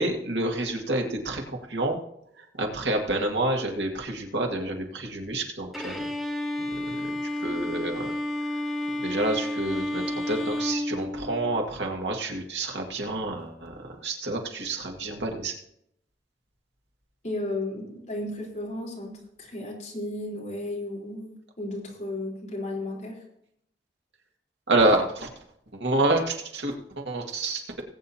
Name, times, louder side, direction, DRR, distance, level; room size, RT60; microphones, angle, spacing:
voice 1, 0.0-2.0 2.6-6.0 6.7-7.1 7.4-8.1 9.0-15.5 24.7-25.3 25.7-27.8, right 2 dB, 90° right, 2 dB, 2.0 m, -28 dB
Bowed string instrument, 5.7-11.7, left 1 dB, ahead, 1.1 m, -31 dB
voice 2, 17.2-23.2, left 1 dB, 40° left, -3 dB, 4.1 m, -34 dB
20.0 x 8.7 x 2.9 m, 0.73 s
head